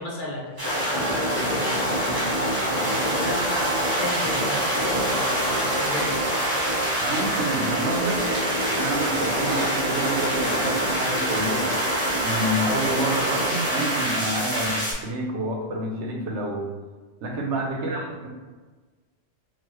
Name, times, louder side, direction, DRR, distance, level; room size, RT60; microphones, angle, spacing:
voice 1, 0.0-2.5 3.0-6.1 17.7-18.1, left 1 dB, 50° left, -3 dB, 0.8 m, -35 dB
sound 1, 0.6-14.9, right 1 dB, 20° right, 1.1 m, -25 dB
sound 2, 1.7-2.4 2.9-4.5 5.7-6.1 6.7-7.3 8.0-8.5 9.2-9.8, right 1 dB, 50° right, 0.8 m, -39 dB
voice 2, 7.0-8.2 8.6-11.8 12.2-16.7 17.2-18.3, right 1 dB, 85° right, 0 dB, 1.0 m, -28 dB
3.9 x 2.4 x 3.0 m, 1.3 s
omnidirectional pair, 1.2 m